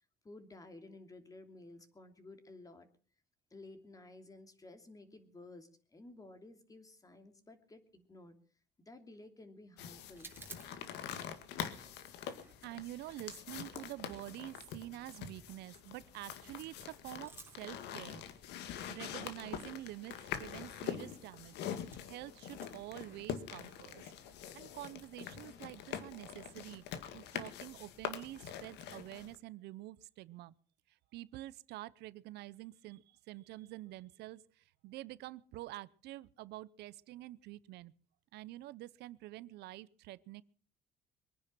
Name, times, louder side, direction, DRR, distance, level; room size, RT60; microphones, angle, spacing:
voice 1, 0.2-2.9 3.5-8.4 8.8-10.3, left 2 dB, 20° left, 2.9 m, -54 dB
sound 1, 9.8-29.4, left 9 dB, 85° left, 2.1 m, -45 dB
sound 2, 10.1-22.2 22.4-27.7, right 3 dB, 15° right, 3.4 m, -61 dB
voice 2, 12.6-18.2 18.6-21.6 22.0-24.1 24.5-26.8 27.1-30.5 30.9-37.9 38.3-40.4, right 16 dB, 80° right, 0.7 m, -48 dB
23.5 x 10.0 x 6.1 m
cardioid pair, 110°, 17 cm